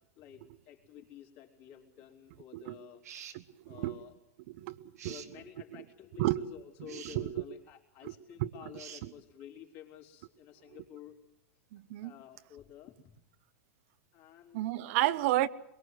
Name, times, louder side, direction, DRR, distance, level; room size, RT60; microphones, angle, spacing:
voice 1, 0.1-3.0 3.7-4.1 5.0-11.2 12.0-13.1 14.1-14.7 15.1-15.3, left 10 dB, 50° left, 4.1 m, -51 dB
sound 1, 3.0-3.4 5.0-5.3 6.9-7.2 8.8-9.1, right 9 dB, 90° right, 1.9 m, -47 dB
voice 2, 3.3-4.0 4.5-4.8 5.0-5.1 6.2-6.4 6.9-7.3 8.0-8.1 8.4-8.5 9.0-9.1 11.7-12.1 14.5-15.5, right 16 dB, 55° right, 0.9 m, -31 dB
23.0 x 22.0 x 8.0 m
hypercardioid pair, 135°, 8 cm